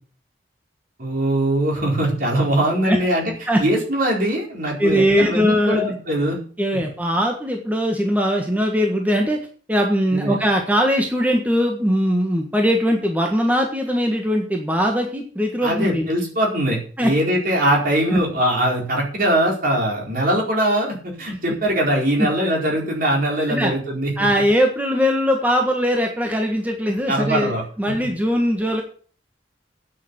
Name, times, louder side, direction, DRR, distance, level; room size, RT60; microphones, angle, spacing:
voice 1, 1.0-3.3 3.6-6.4 6.7-6.8 10.1-10.4 15.6-24.3 27.1-27.6, right 1 dB, 50° right, -1 dB, 4.2 m, -21 dB
voice 2, 4.8-5.9 6.6-9.4 9.7-16.1 17.0-17.1 18.1-18.2 23.5-23.7 24.2-28.8, equal, 10° right, 2 dB, 1.5 m, -20 dB
9.5 x 6.9 x 8.2 m, 0.43 s
head